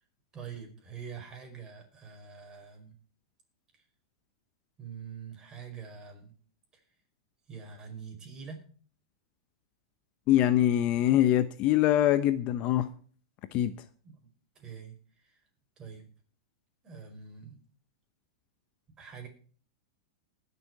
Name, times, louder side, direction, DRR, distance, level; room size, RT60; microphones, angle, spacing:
voice 1, 0.3-2.9 3.7-3.8 4.8-6.3 6.7-6.8 7.5-8.6 14.0-14.3 14.5-15.4 15.8-16.1 16.8-17.6 19.0-19.3, right 6 dB, 20° right, 5.1 m, -45 dB
voice 2, 10.3-12.9 13.5-13.7, left 12 dB, 40° left, 0.8 m, -24 dB
20.0 x 7.0 x 4.7 m
hypercardioid pair, 130°, 3 cm